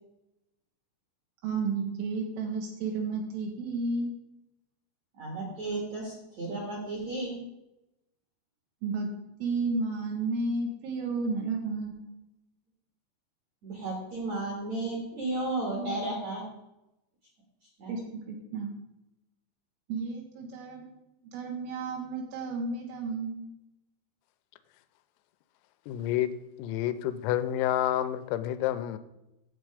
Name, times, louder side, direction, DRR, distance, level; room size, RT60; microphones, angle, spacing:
voice 1, 1.4-4.1 8.8-9.1 9.4-12.0 17.9-18.0 18.3-18.7 19.9-20.8 21.3-23.5, right 3 dB, 75° right, 0 dB, 3.6 m, -32 dB
voice 2, 5.2-7.4 13.6-16.4 17.8-18.0, right 2 dB, 55° right, -1 dB, 2.0 m, -33 dB
voice 3, 25.9-26.3 26.6-29.0, left 12 dB, 90° left, 12 dB, 3.3 m, -29 dB
11.0 x 7.8 x 4.9 m, 0.92 s
omnidirectional pair, 6.0 m